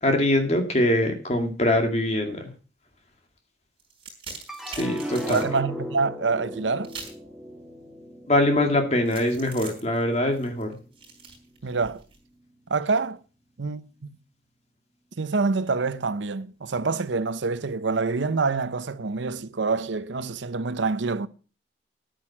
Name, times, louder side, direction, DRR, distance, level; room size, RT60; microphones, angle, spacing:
voice 1, 0.0-2.5 4.7-5.4 8.3-10.8, left 1 dB, 35° left, 2.2 m, -23 dB
sound 1, 3.8-5.5 6.8-7.3 9.1-12.2, right 5 dB, 30° right, 4.5 m, -42 dB
sound 2, 4.5-10.9 11.4-12.1, equal, ahead, 1.4 m, -38 dB
voice 2, 5.3-7.0 11.6-12.0 12.7-13.2 13.6-13.8 15.2-21.3, right 4 dB, 85° right, 0.7 m, -26 dB
10.5 x 9.0 x 5.9 m
head